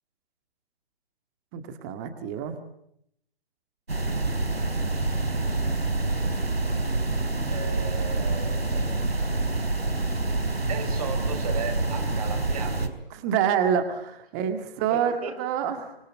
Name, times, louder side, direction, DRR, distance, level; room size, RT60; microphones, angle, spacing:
voice 1, 1.5-2.6 13.1-15.1 15.4-16.0, right 8 dB, 20° right, 8 dB, 2.1 m, -27 dB
sound 1, 3.9-12.9, right 2 dB, 85° right, 4.2 m, -27 dB
voice 2, 7.4-9.1 10.7-12.9 14.9-15.4, right 6 dB, 40° right, 7 dB, 4.7 m, -36 dB
26.5 x 21.5 x 9.5 m, 0.77 s
figure-of-eight pair, 145°, 30 cm